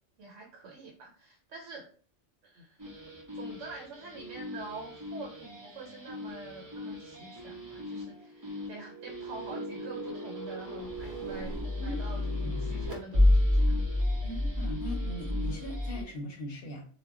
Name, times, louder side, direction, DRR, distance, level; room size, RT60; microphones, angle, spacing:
voice 1, 0.2-1.9 2.4-2.8 3.3-13.8, right 3 dB, 80° right, 0 dB, 0.9 m, -46 dB
sound 1, 2.8-16.0, left 1 dB, 25° right, 0.4 m, -31 dB
voice 2, 12.4-12.9 14.2-16.8, equal, 60° left, 1 dB, 0.8 m, -40 dB
2.1 x 2.1 x 3.5 m, 0.43 s
omnidirectional pair, 1.2 m